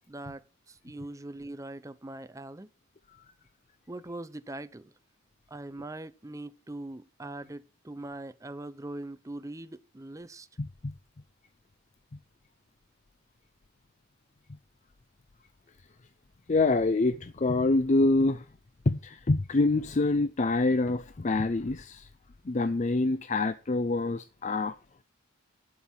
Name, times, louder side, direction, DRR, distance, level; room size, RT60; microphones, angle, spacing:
voice 1, 0.1-2.7 3.9-4.9 5.5-10.5, right 2 dB, 15° right, 0.5 m, -41 dB
voice 2, 10.6-10.9 16.5-18.4 18.9-22.1 22.5-24.7, left 2 dB, 35° left, 0.5 m, -26 dB
11.5 x 5.3 x 6.0 m
head